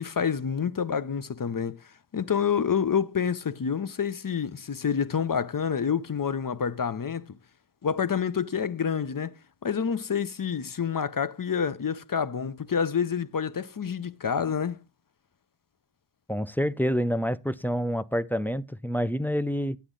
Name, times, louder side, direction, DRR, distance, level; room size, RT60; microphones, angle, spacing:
voice 1, 0.0-1.8 2.1-7.3 7.8-9.3 9.6-14.8, left 7 dB, 45° left, 0.7 m, -28 dB
voice 2, 16.3-19.8, equal, 5° left, 0.4 m, -27 dB
10.0 x 8.4 x 3.8 m
wide cardioid pair, 65°, 46 cm